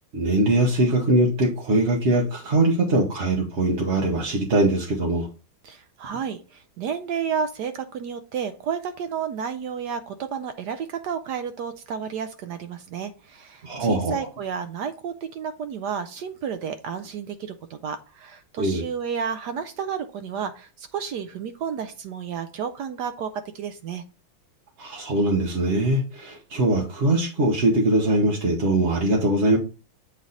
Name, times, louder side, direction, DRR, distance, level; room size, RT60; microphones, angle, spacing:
voice 1, 0.1-5.3 13.6-14.2 18.6-18.8 24.8-29.6, right 2 dB, 45° right, 0 dB, 1.0 m, -22 dB
voice 2, 5.6-24.0, right 7 dB, 70° right, 9 dB, 1.0 m, -31 dB
8.0 x 3.2 x 4.0 m, 0.34 s
omnidirectional pair, 2.2 m